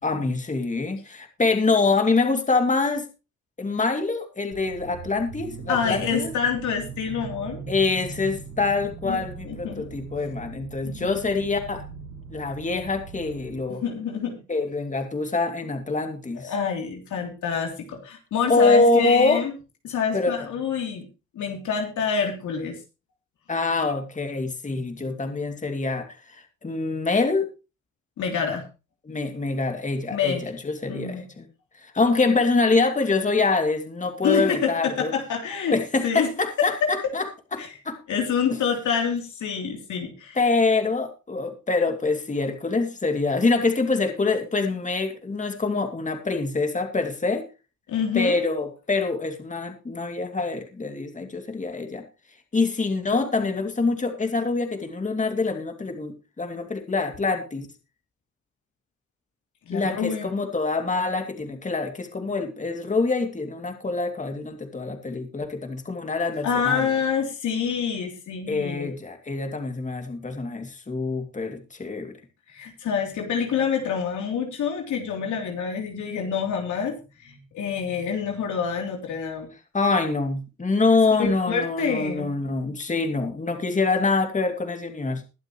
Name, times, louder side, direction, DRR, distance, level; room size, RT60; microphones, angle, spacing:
voice 1, 0.0-3.1 3.6-6.3 7.7-11.8 12.3-13.8 14.5-16.5 18.5-19.4 20.1-20.5 23.5-27.5 29.0-31.5 31.8-35.1 35.7-37.3 37.5-38.0 40.4-47.4 48.1-52.0 52.5-57.7 59.7-66.9 68.5-72.2 79.7-85.3, left 3 dB, 25° left, 6 dB, 2.6 m, -25 dB
sound 1, 4.5-13.6, right 5 dB, 65° right, 6.1 m, -40 dB
voice 2, 5.7-7.6 9.0-9.9 10.8-11.1 13.7-14.4 16.4-19.5 19.8-21.1 21.3-22.8 28.2-28.6 30.1-30.4 30.9-31.2 34.2-35.8 36.0-36.3 36.8-36.9 37.6-37.7 38.1-40.4 47.9-48.4 59.7-60.3 66.4-68.9 72.5-79.5 81.2-82.3, left 6 dB, 75° left, 2 dB, 3.3 m, -27 dB
22.0 x 7.5 x 3.1 m, 0.30 s
cardioid pair, 90°, 30 cm